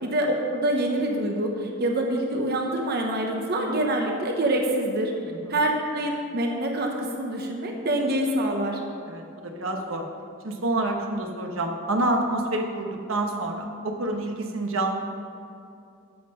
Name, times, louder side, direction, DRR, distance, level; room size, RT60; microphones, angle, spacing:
voice 1, 0.0-5.2 5.5-8.8, right 1 dB, 50° right, 1 dB, 1.0 m, -26 dB
voice 2, 9.1-10.0 10.4-15.0, right 2 dB, 75° right, 3 dB, 1.1 m, -28 dB
13.5 x 5.6 x 5.6 m, 2.5 s
head